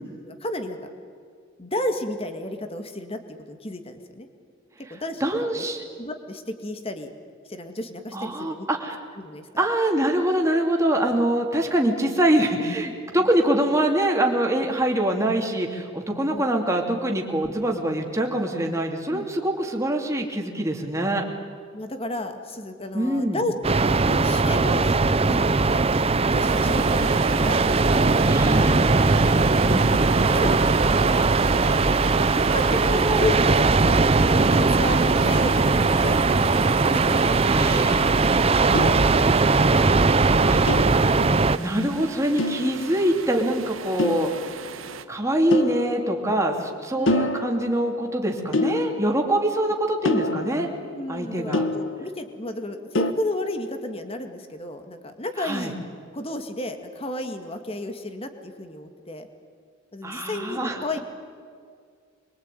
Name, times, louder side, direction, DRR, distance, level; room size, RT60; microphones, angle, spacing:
voice 1, 0.2-0.9 1.6-3.2 3.5-4.3 4.9-5.7 6.0-7.1 7.5-8.7 9.2-9.5 16.3-16.5 19.1-19.2 21.7-23.5 23.8-25.9 26.3-27.7 28.3-28.7 30.3-31.2 32.3-33.3 34.3-36.2 36.8-40.0 46.9-47.3 51.0-55.8 56.1-59.3 59.9-61.0, left 1 dB, 30° left, 7 dB, 2.1 m, -32 dB
voice 2, 5.2-5.8 8.1-9.0 9.6-21.2 22.9-23.4 28.2-29.9 32.7-33.2 37.5-38.0 40.5-40.7 41.6-44.3 45.1-50.7 51.1-51.7 55.4-55.7 60.0-61.0, right 1 dB, 15° right, 1 dB, 2.9 m, -24 dB
sound 1, 23.6-41.6, right 3 dB, 30° right, 0.6 m, -20 dB
sound 2, 26.4-45.0, right 5 dB, 90° right, 1.3 m, -35 dB
sound 3, 36.3-37.3 38.7-39.8 40.7-41.9 42.4-43.3 44.0-45.0 45.5-46.7 47.1-48.1 48.5-49.5 50.0-52.4 52.9-53.1, left 2 dB, 70° left, 1.6 m, -29 dB
26.5 x 23.0 x 9.3 m, 2.2 s
head